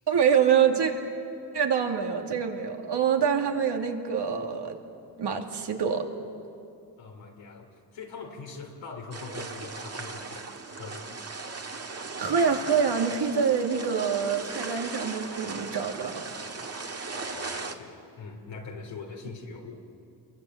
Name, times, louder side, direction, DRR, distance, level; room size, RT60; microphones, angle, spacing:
voice 1, 0.1-0.9 1.5-4.7 5.2-6.0 12.2-16.2, right 7 dB, 70° right, 3 dB, 2.7 m, -25 dB
voice 2, 7.0-11.2 17.1-19.8, left 4 dB, 85° left, 0 dB, 3.4 m, -42 dB
sound 1, 9.1-17.7, right 4 dB, 35° right, 1.9 m, -37 dB
28.5 x 23.0 x 8.0 m, 2.5 s
cardioid pair, 85°, 43 cm